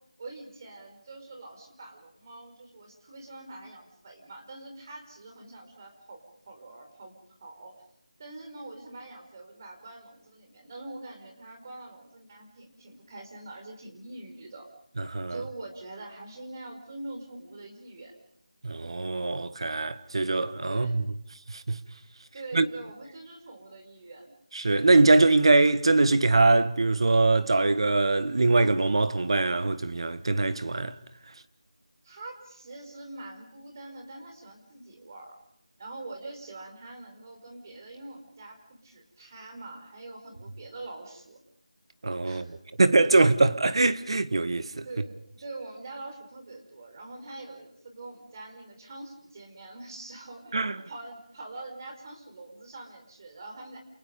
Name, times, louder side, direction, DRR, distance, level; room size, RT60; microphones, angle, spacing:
voice 1, 0.2-7.8 8.2-14.7 15.3-18.1 20.7-20.9 22.3-24.3 32.0-35.4 35.8-41.4 42.2-42.5 44.8-50.6 50.9-53.8, right 2 dB, 30° right, 5.0 m, -44 dB
voice 2, 15.0-15.4 18.6-21.0 21.5-21.8 22.5-22.7 24.5-30.9 42.0-44.8 50.5-50.8, right 3 dB, 50° right, 1.4 m, -23 dB
28.5 x 28.0 x 5.3 m
figure-of-eight pair, 170°, 4 cm